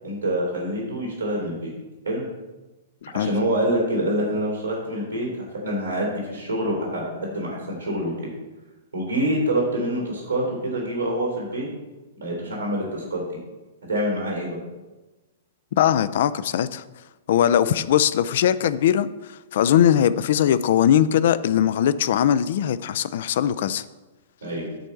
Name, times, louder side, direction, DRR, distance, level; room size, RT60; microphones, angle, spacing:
voice 1, 0.0-1.7 2.0-2.3 3.1-8.1 8.9-11.7 12.2-13.2 13.9-14.6 24.4-24.7, right 1 dB, 80° right, -3 dB, 3.1 m, -26 dB
voice 2, 3.0-3.3 15.7-16.8 17.3-23.8, left 10 dB, 55° left, 15 dB, 0.4 m, -20 dB
9.1 x 4.3 x 6.7 m, 1.2 s
figure-of-eight pair, 105°, 0 cm